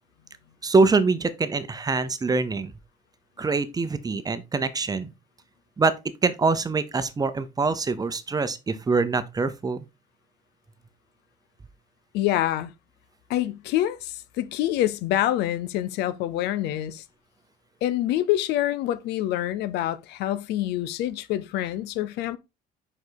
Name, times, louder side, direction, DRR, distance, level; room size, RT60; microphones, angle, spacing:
voice 1, 0.6-2.7 3.4-5.1 5.8-6.0 6.2-9.8, right 4 dB, 20° right, 0.8 m, -24 dB
voice 2, 12.1-12.7 13.3-17.0 17.8-22.4, left 13 dB, 85° left, 0.7 m, -26 dB
5.4 x 5.2 x 4.0 m
cardioid pair, 110°, 17 cm